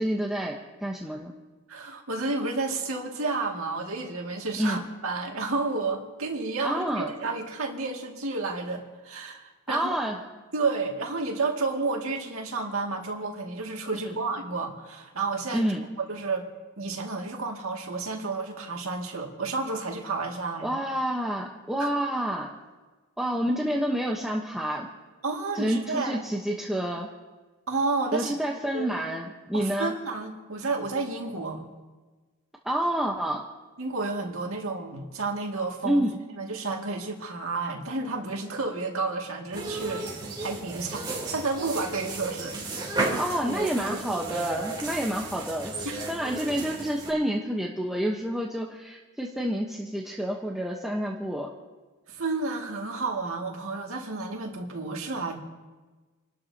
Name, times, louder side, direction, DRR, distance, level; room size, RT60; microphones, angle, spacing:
voice 1, 0.0-1.3 4.6-4.8 6.6-7.1 9.7-10.2 14.1-14.2 15.5-15.8 20.6-22.5 23.2-24.9 25.5-27.1 28.1-29.9 32.6-33.5 35.8-36.1 43.1-51.5, equal, ahead, -2 dB, 1.0 m, -29 dB
voice 2, 1.7-9.9 10.5-15.7 16.0-16.5 16.8-20.8 21.8-21.9 25.2-26.2 27.7-28.3 28.7-29.0 29.5-31.7 33.8-36.1 36.4-40.0 40.4-42.5 42.9-43.1 45.8-46.1 52.1-55.3, right 3 dB, 65° right, 0 dB, 2.2 m, -31 dB
sound 1, 39.5-47.1, right 2 dB, 20° right, 3.3 m, -34 dB
29.5 x 12.5 x 2.8 m, 1.3 s
head